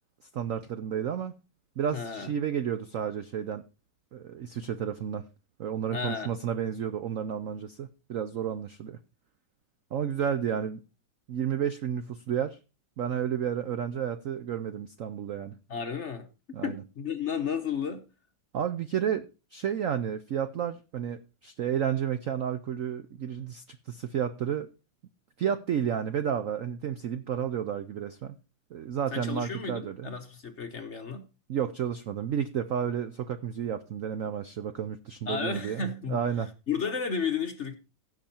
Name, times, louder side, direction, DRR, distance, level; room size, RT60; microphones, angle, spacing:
voice 1, 0.3-1.3 1.8-3.6 4.1-5.2 5.6-9.0 9.9-10.8 11.3-12.6 13.0-15.6 16.5-16.8 18.5-24.7 25.4-28.3 28.7-30.1 31.5-36.5, right 8 dB, 65° right, 0.8 m, -31 dB
voice 2, 1.9-2.3 5.9-6.3 15.7-16.3 16.6-18.0 29.1-31.2 35.3-36.2 36.7-37.7, left 6 dB, 45° left, 1.1 m, -32 dB
16.0 x 6.3 x 4.3 m
omnidirectional pair, 2.1 m